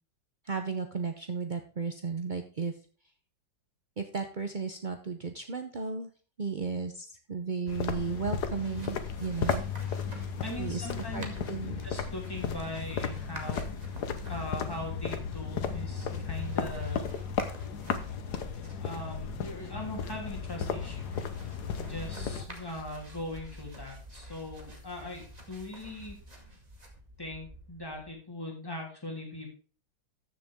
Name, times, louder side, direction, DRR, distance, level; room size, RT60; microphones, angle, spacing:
voice 1, 0.4-2.7 4.0-6.1 6.4-9.6 10.6-11.8, right 5 dB, 45° right, 6 dB, 0.6 m, -34 dB
sound 1, 7.7-22.5, left 6 dB, 60° left, 1.5 m, -34 dB
sound 2, 8.2-28.1, right 1 dB, 20° right, 2.1 m, -51 dB
voice 2, 10.4-11.3 11.6-13.6 14.3-17.1 18.8-21.1 21.7-26.2 27.2-29.5, left 1 dB, 10° left, -1 dB, 3.3 m, -40 dB
14.0 x 6.9 x 3.6 m, 0.39 s
omnidirectional pair, 2.1 m